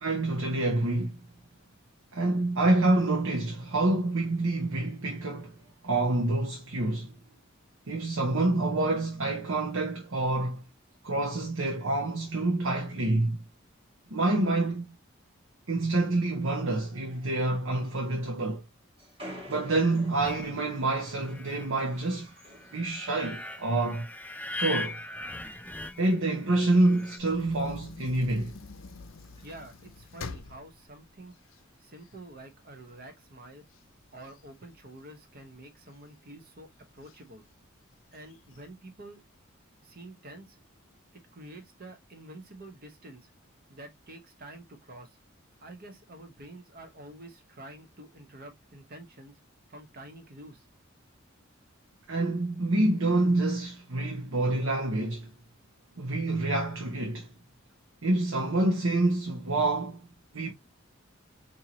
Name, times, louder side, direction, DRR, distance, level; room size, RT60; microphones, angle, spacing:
voice 1, 0.0-1.2 2.1-5.6 5.8-7.1 7.9-10.6 11.0-13.4 14.1-14.9 15.7-18.6 19.5-22.3 22.7-24.1 24.6-25.0 26.0-28.6 52.1-55.3 56.0-57.3 58.0-60.0 60.3-60.5, right 2 dB, 75° right, 0.9 m, -27 dB
sound 1, 19.0-23.8 24.1-25.1 25.4-25.6 26.2-28.1 28.5-28.6 28.8-28.9 29.2-29.6 30.4-30.6 31.4-31.8, equal, 25° right, 2.1 m, -51 dB
sound 2, 20.2-27.2, left 2 dB, 10° left, 0.4 m, -40 dB
sound 3, 27.2-32.4 32.9-33.0 33.3-35.4 35.9-36.4 37.0-37.2 37.4-37.5 38.0-38.6, left 4 dB, 70° left, 0.6 m, -46 dB
voice 2, 29.4-31.3 31.8-33.6 34.1-36.7 36.9-37.4 38.1-39.2 39.8-40.6 41.3-43.3 43.7-45.1 45.6-49.3 49.7-50.6, right 1 dB, 50° right, 1.0 m, -48 dB
4.5 x 2.8 x 2.8 m
head